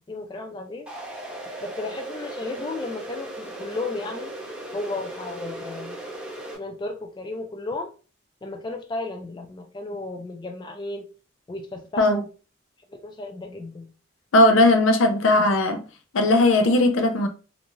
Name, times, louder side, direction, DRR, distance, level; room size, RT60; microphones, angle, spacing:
voice 1, 0.1-0.9 1.6-4.3 4.7-6.0 6.6-7.9 8.4-11.1 11.5-12.3 12.9-13.9, left 2 dB, 20° left, 0.3 m, -34 dB
sound 1, 0.9-6.6, right 1 dB, 5° right, 0.7 m, -37 dB
voice 2, 14.3-15.8 16.1-17.3, left 2 dB, 80° left, 0.5 m, -18 dB
2.6 x 2.3 x 2.9 m
head